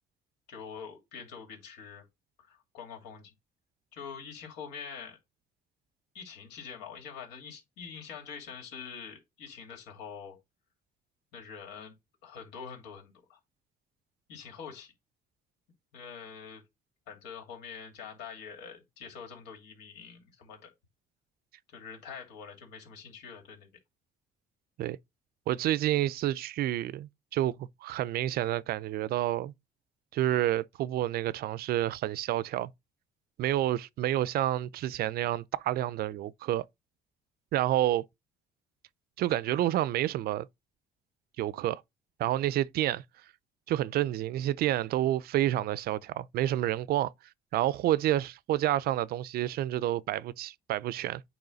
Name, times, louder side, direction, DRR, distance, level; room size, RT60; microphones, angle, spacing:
voice 1, 0.5-2.1 2.4-3.3 3.9-5.2 6.1-10.4 11.3-12.0 12.2-13.4 14.3-14.9 15.9-16.6 17.1-20.7 21.7-23.7, left 6 dB, 85° left, 2.7 m, -45 dB
voice 2, 25.5-29.5 30.1-32.7 33.4-36.6 37.5-38.0 39.2-40.5 41.4-41.8 42.2-43.0 43.7-47.1 47.5-51.2, right 13 dB, 65° right, 0.5 m, -29 dB
9.0 x 3.1 x 3.9 m
cardioid pair, 110°, 17 cm